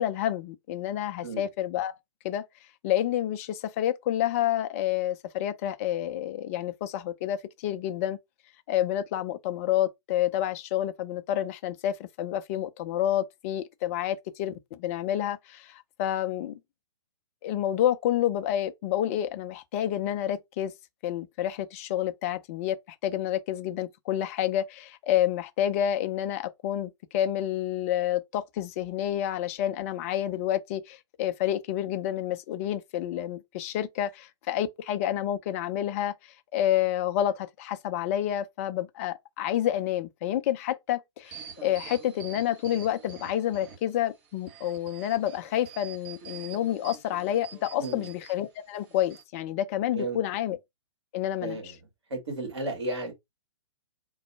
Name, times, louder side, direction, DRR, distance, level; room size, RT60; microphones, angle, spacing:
voice 1, 0.0-2.0 2.2-2.5 2.8-8.2 8.7-16.6 17.4-20.7 21.0-36.2 36.5-50.6 51.1-51.7, left 11 dB, 30° left, 0.5 m, -29 dB
sound 1, 41.2-44.0 44.4-48.3 48.9-49.2, right 7 dB, 30° right, 1.0 m, -46 dB
voice 2, 51.4-51.7 52.1-53.1, right 2 dB, 60° right, 2.2 m, -33 dB
3.8 x 2.2 x 4.3 m
figure-of-eight pair, 120°, 16 cm